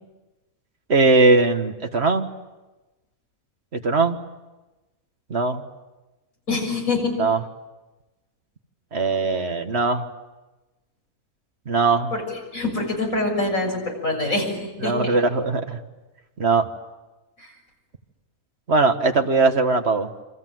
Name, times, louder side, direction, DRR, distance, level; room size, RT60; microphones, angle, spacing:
voice 1, 0.9-2.3 3.7-4.2 5.3-5.6 7.2-7.4 8.9-10.1 11.7-12.1 14.8-15.8 16.4-16.7 18.7-20.1, right 3 dB, 45° right, 6 dB, 1.9 m, -20 dB
voice 2, 6.5-7.1 12.1-15.2 17.4-17.5, left 2 dB, 65° left, 0 dB, 7.3 m, -25 dB
28.5 x 25.5 x 7.8 m, 1.1 s
omnidirectional pair, 1.5 m